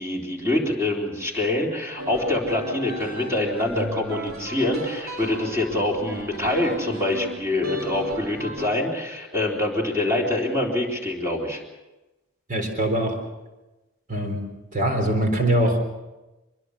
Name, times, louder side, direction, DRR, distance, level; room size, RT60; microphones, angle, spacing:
voice 1, 0.0-11.6, left 2 dB, 15° right, -1 dB, 3.7 m, -25 dB
sound 1, 2.0-8.7, right 1 dB, 85° right, 3.9 m, -35 dB
voice 2, 12.5-13.2 14.1-14.4 14.7-15.8, right 1 dB, 40° right, 4 dB, 4.0 m, -22 dB
24.0 x 21.5 x 6.4 m, 1.1 s
head